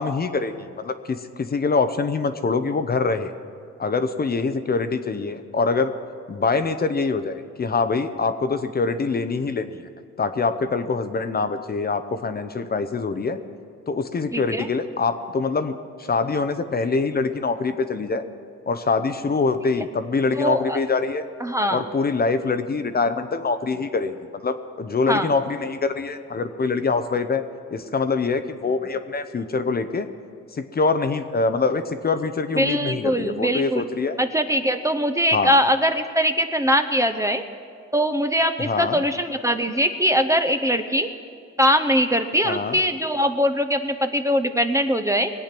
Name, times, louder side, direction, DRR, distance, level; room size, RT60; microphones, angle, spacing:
voice 1, 0.0-3.3 3.8-5.9 6.3-9.8 10.2-13.4 13.9-15.7 16.0-18.2 18.7-21.3 21.7-27.4 27.7-30.1 30.5-34.2 35.3-35.5 38.6-39.0 42.4-42.8, left 4 dB, 30° left, 9 dB, 0.8 m, -24 dB
voice 2, 14.3-14.7 20.4-20.8 21.4-21.8 25.1-25.3 32.6-33.9 34.2-37.4 37.9-41.1 41.6-45.3, equal, 10° right, 7 dB, 0.7 m, -22 dB
21.0 x 8.6 x 6.0 m, 2.2 s
cardioid pair, 90°, 30 cm